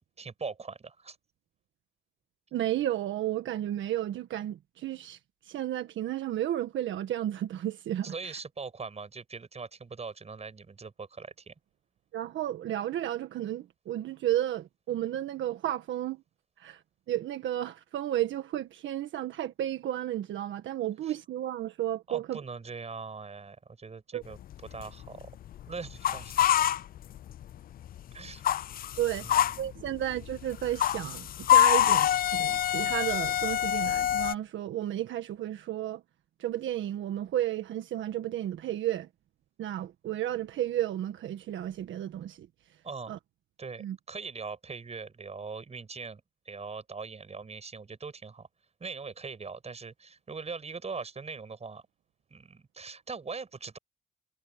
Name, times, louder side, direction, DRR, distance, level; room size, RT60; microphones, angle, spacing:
voice 1, 0.2-1.2 8.0-11.5 21.1-21.2 22.1-25.3 25.7-26.6 28.1-28.4 29.2-30.0 42.8-43.2 43.6-48.5 48.8-51.8 52.3-53.8, right 4 dB, 35° right, 7.0 m, -41 dB
voice 2, 2.5-8.4 12.1-16.2 16.6-22.4 24.1-24.2 29.0-29.3 29.6-36.0 36.4-39.1 39.6-42.5 43.1-43.2 43.8-44.0, right 12 dB, 75° right, 1.5 m, -33 dB
sound 1, 24.3-27.6 27.8-34.3, left 11 dB, 50° left, 0.4 m, -26 dB
cardioid pair, 90°, 20 cm